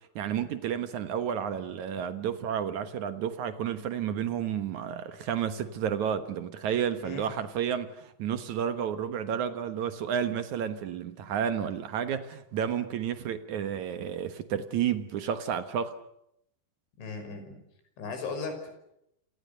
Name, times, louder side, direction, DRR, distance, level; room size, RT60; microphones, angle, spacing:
voice 1, 0.1-15.9, right 8 dB, 75° right, 1.7 m, -31 dB
voice 2, 17.0-17.6 18.0-18.7, left 4 dB, 75° left, 8.2 m, -37 dB
28.5 x 28.0 x 6.9 m
omnidirectional pair, 5.5 m